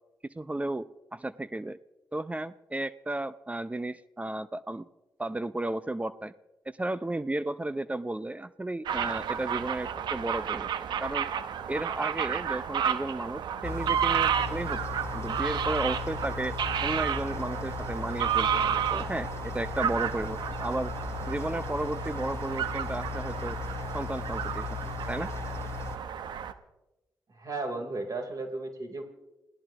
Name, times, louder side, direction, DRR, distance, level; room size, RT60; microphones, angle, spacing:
voice 1, 0.2-1.8 2.1-4.9 5.2-6.3 6.7-10.7 11.0-11.3 11.7-16.6 16.8-20.9 21.3-23.6 23.9-25.3, right 2 dB, 20° right, 14 dB, 0.7 m, -34 dB
sound 1, 8.9-26.5, right 8 dB, 75° right, 0.9 m, -32 dB
sound 2, 13.6-26.0, left 7 dB, 35° left, 2.1 m, -38 dB
voice 2, 27.3-29.0, right 2 dB, 50° right, 3 dB, 3.8 m, -34 dB
28.0 x 17.0 x 3.0 m, 1.0 s
supercardioid pair, 50°, 8 cm